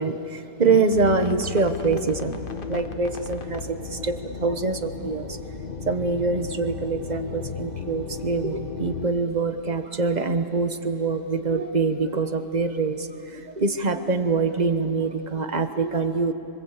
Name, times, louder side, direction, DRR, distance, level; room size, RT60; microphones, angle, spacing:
voice 1, 0.0-2.4 2.7-5.4 5.9-16.3, right 4 dB, 30° right, 8 dB, 1.1 m, -25 dB
sound 1, 0.9-9.1, left 6 dB, 40° left, 1.0 m, -35 dB
26.0 x 25.5 x 8.3 m, 2.9 s
omnidirectional pair, 1.7 m